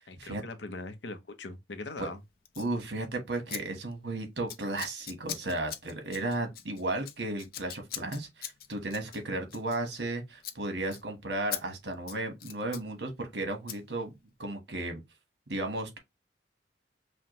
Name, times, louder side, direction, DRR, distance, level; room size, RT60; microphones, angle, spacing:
voice 1, 0.1-2.2, left 3 dB, 90° left, 0.8 m, -41 dB
Scissors, 2.5-2.7 3.5-3.6 3.9-4.1 4.5-10.1 10.4-10.6 10.9-11.0 11.5-11.6 11.9-12.9 13.7-13.8, left 10 dB, 55° left, 0.5 m, -41 dB
voice 2, 2.6-14.1 14.4-15.0 15.5-16.0, right 2 dB, 75° right, 1.3 m, -34 dB
5.7 x 2.2 x 3.0 m
head